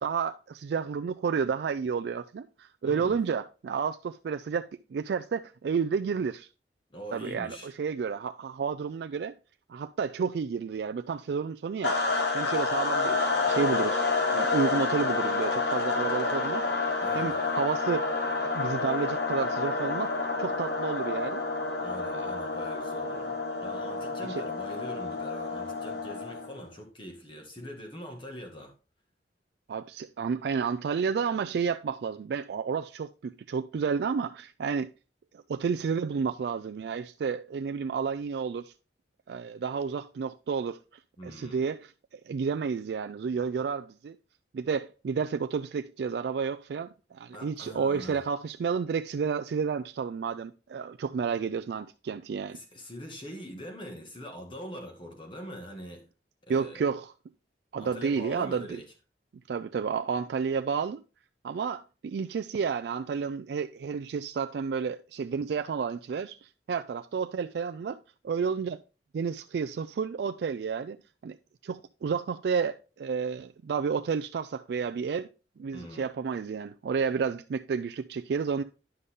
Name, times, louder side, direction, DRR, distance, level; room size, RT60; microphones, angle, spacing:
voice 1, 0.0-6.5 7.1-9.3 9.7-12.0 12.3-14.1 14.3-16.6 17.1-18.1 18.4-20.1 20.4-21.4 22.1-22.3 24.3-24.4 29.7-34.9 35.3-38.7 39.3-40.8 41.2-44.2 44.5-52.6 56.5-57.1 57.7-58.8 59.5-61.0 61.4-68.0 68.2-68.8 69.1-71.0 71.2-71.4 71.6-75.3 75.6-78.6, right 6 dB, 65° right, 0.3 m, -31 dB
voice 2, 2.8-3.2 6.9-7.7 17.0-17.4 21.8-28.7 41.2-41.6 47.3-48.2 52.5-56.0 56.5-56.9 57.8-58.8 75.7-76.1, equal, 30° left, 1.7 m, -43 dB
sound 1, 11.8-26.6, left 3 dB, 70° left, 1.2 m, -29 dB
9.9 x 5.4 x 3.5 m
head